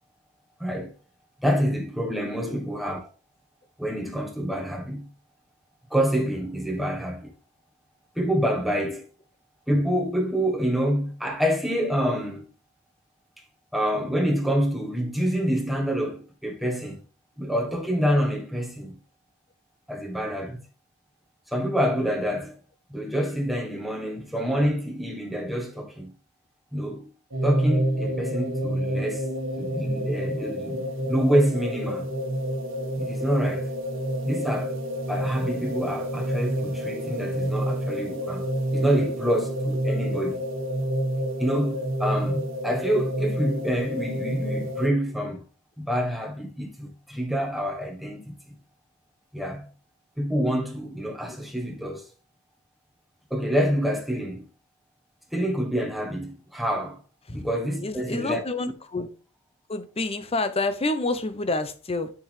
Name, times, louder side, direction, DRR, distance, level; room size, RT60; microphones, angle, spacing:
voice 1, 0.6-0.9 1.4-3.1 3.8-5.1 5.9-7.3 8.2-9.1 9.7-12.5 13.7-17.0 17.4-19.0 19.9-20.6 21.5-22.5 22.9-26.1 26.7-27.1 27.4-29.3 29.6-32.1 33.0-33.7 34.2-34.8 35.1-40.4 41.4-45.4 45.8-48.3 49.3-49.6 50.2-52.0 53.3-54.4 55.3-57.0 57.3-58.5, equal, ahead, 1.2 m, -27 dB
sound 1, 27.3-44.9, right 1 dB, 65° right, 1.4 m, -28 dB
voice 2, 57.8-59.1 59.7-62.1, left 2 dB, 30° left, 0.7 m, -28 dB
6.7 x 6.0 x 3.3 m
head